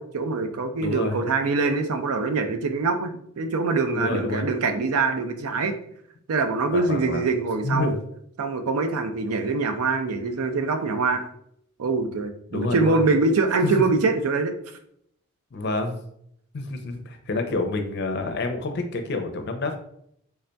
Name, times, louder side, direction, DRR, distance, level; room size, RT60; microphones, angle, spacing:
voice 1, 0.0-5.8 6.3-7.9 8.4-11.2 11.8-14.5, right 3 dB, 80° right, 7 dB, 0.5 m, -24 dB
voice 2, 0.8-1.2 3.9-4.5 6.7-7.2 7.6-8.0 12.5-13.0 13.6-13.8 15.5-16.0 16.5-19.8, left 2 dB, 50° left, 6 dB, 0.5 m, -28 dB
3.9 x 3.4 x 2.2 m, 0.70 s
head